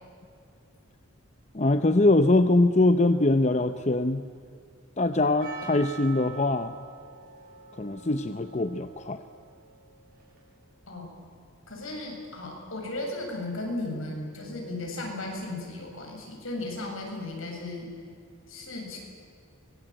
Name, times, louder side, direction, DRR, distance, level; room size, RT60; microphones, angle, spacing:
voice 1, 1.5-4.2 5.0-6.7 7.8-9.2, left 2 dB, 30° left, 10 dB, 0.7 m, -23 dB
Percussion, 5.4-10.6, right 5 dB, 40° right, 6.2 m, -46 dB
voice 2, 11.7-17.9 18.5-19.0, left 2 dB, 70° left, 0 dB, 7.7 m, -35 dB
24.0 x 23.5 x 8.9 m, 2.5 s
head